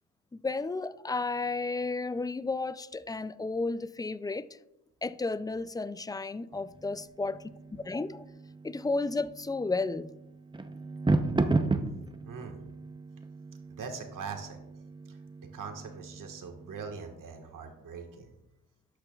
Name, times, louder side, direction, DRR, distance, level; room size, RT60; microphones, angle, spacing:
voice 1, 0.3-4.5 5.0-7.4 7.7-8.2 8.6-10.1, left 3 dB, 10° left, 15 dB, 0.4 m, -32 dB
sound 1, 6.5-17.3, right 2 dB, 15° right, 0.7 m, -35 dB
voice 2, 12.3-12.6 13.7-14.6 15.1-18.3, right 5 dB, 70° right, 4 dB, 1.6 m, -42 dB
12.0 x 8.6 x 2.4 m, 0.91 s
cardioid pair, 65°, 34 cm